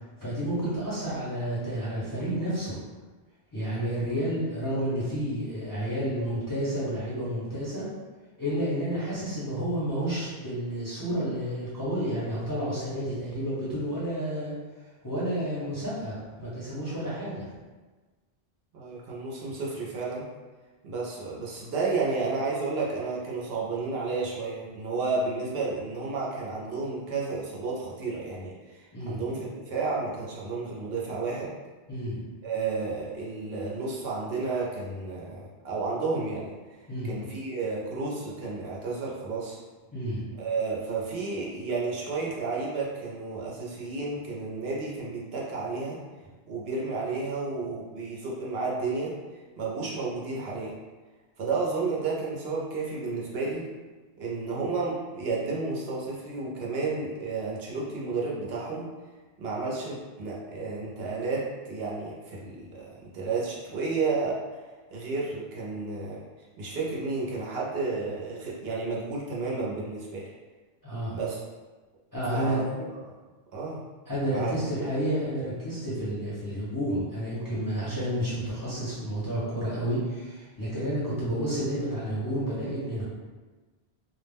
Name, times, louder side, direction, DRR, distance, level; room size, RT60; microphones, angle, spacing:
voice 1, 0.2-2.8 3.5-7.9 8.4-14.5 15.0-17.5 28.9-29.2 31.9-32.2 36.9-37.1 39.9-40.3 70.8-71.2 72.1-72.6 74.1-83.0, right 1 dB, 25° left, -10 dB, 0.6 m, -30 dB
voice 2, 18.7-20.3 20.8-31.5 32.4-36.5 37.0-39.6 40.4-46.0 46.5-49.2 49.6-50.7 51.4-53.7 54.2-58.9 59.4-64.4 64.9-66.2 66.6-70.3 71.2-71.4 72.3-73.1 73.5-73.8 74.3-74.5, right 3 dB, 70° right, -4 dB, 0.8 m, -32 dB
2.3 x 2.0 x 3.3 m, 1.3 s
omnidirectional pair, 1.1 m